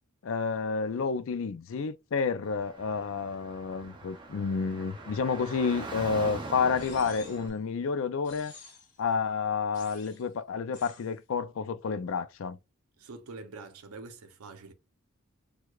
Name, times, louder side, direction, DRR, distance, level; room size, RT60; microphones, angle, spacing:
voice 1, 0.2-8.5 9.0-12.6, left 5 dB, 65° left, 0.4 m, -30 dB
Car / Traffic noise roadway noise, 2.4-7.5, right 2 dB, 20° right, 0.5 m, -43 dB
sound 1, 6.7-7.5 8.2-9.0 9.7-10.3 10.7-11.1, left 5 dB, 35° left, 1.0 m, -50 dB
voice 2, 13.0-14.7, right 3 dB, 85° right, 0.6 m, -45 dB
4.6 x 2.3 x 2.3 m
head